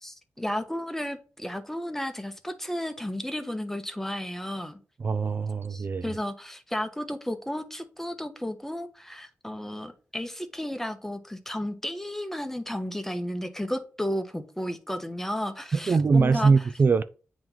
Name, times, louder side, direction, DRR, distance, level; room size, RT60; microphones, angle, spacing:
voice 1, 0.0-4.8 5.7-16.7, left 1 dB, 5° left, 0.9 m, -33 dB
voice 2, 5.0-6.2 15.7-17.0, right 4 dB, 45° right, 0.3 m, -22 dB
8.6 x 3.0 x 3.8 m
cardioid pair, 70°, 5 cm